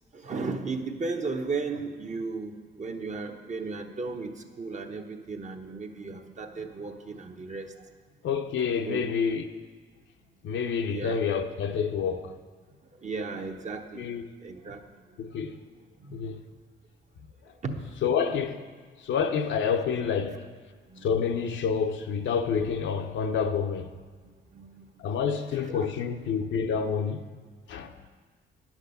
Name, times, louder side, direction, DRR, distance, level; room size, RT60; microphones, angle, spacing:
voice 1, 0.1-7.7 8.8-9.1 10.9-11.2 13.0-14.0 14.4-14.8 16.0-16.2 17.6-17.8 20.9-21.1 24.5-25.0 25.6-25.9, right 4 dB, 35° right, 0.9 m, -35 dB
voice 2, 8.2-9.5 10.4-12.3 14.0-14.3 15.2-15.6 16.1-16.4 18.0-18.6 19.0-20.4 21.0-23.9 25.0-27.2 27.7-27.9, left 6 dB, 70° left, 0.7 m, -28 dB
9.5 x 6.0 x 6.8 m
cardioid pair, 90°, 20 cm